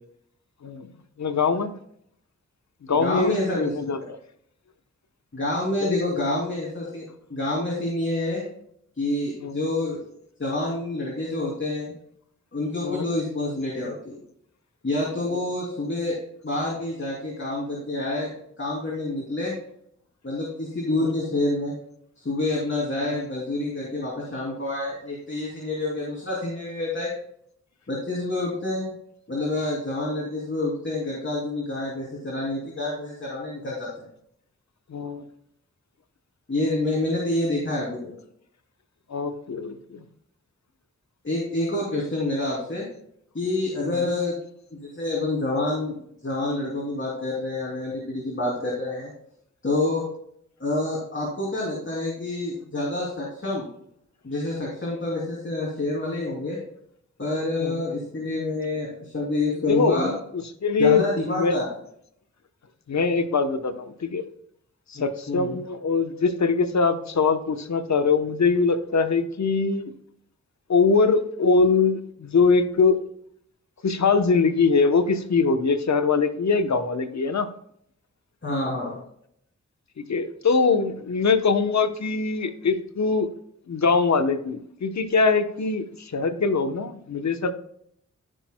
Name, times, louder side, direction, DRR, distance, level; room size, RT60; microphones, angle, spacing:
voice 1, 1.2-1.7 2.9-4.2 5.8-6.0 9.4-9.5 12.8-13.1 15.3-15.4 21.0-21.1 34.9-35.2 39.1-40.0 44.0-44.2 57.6-57.8 59.6-61.6 62.9-64.3 64.9-69.9 70.7-73.0 73.8-77.5 80.0-83.3 83.7-87.5, left 4 dB, 65° left, 9 dB, 0.9 m, -23 dB
voice 2, 2.9-3.7 5.3-8.4 9.0-10.0 10.4-11.9 12.5-14.2 14.8-16.2 16.4-18.3 18.6-19.6 20.2-21.8 22.2-27.1 27.9-28.9 29.3-34.1 36.5-38.1 41.2-42.8 43.3-44.4 44.8-49.1 49.6-50.0 50.6-53.7 54.2-56.6 57.2-60.1 60.8-61.7 64.9-65.6 78.4-79.0, left 2 dB, 40° left, -5 dB, 2.8 m, -27 dB
14.5 x 6.3 x 2.2 m, 0.69 s
cardioid pair, 65°, 30 cm